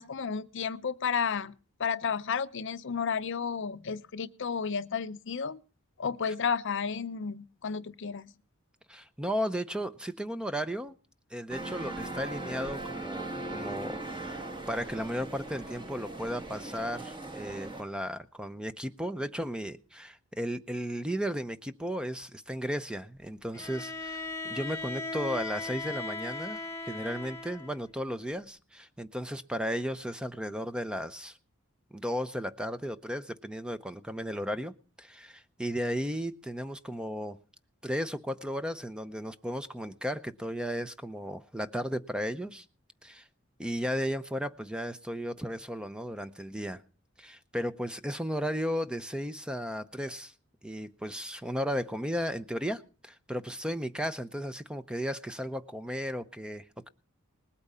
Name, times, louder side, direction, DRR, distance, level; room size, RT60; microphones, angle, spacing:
voice 1, 0.0-1.5 1.8-5.6 6.0-8.3, left 6 dB, 60° left, 0.6 m, -32 dB
voice 2, 8.9-10.9 11.3-31.4 31.9-37.4 37.8-42.6 43.0-43.3 43.6-46.8 47.2-50.3 50.6-56.9, equal, 5° right, 0.6 m, -35 dB
sound 1, 11.5-17.8, right 2 dB, 20° right, 1.4 m, -39 dB
Bowed string instrument, 23.5-27.8, left 3 dB, 10° left, 1.3 m, -38 dB
19.5 x 8.6 x 5.5 m
head